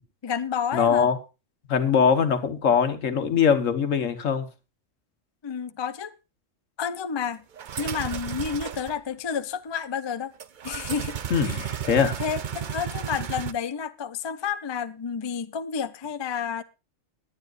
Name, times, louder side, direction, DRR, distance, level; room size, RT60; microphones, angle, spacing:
voice 1, 0.2-1.1 5.4-6.2 6.8-7.5 7.8-10.3 10.6-11.7 12.2-16.6, left 7 dB, 40° left, 0.3 m, -30 dB
voice 2, 0.7-1.2 1.7-4.5 11.3-12.2, left 7 dB, 75° left, 1.5 m, -22 dB
sound 1, 7.6-8.9 10.4-13.5, right 8 dB, 50° right, 0.7 m, -33 dB
20.0 x 8.9 x 2.5 m
omnidirectional pair, 1.3 m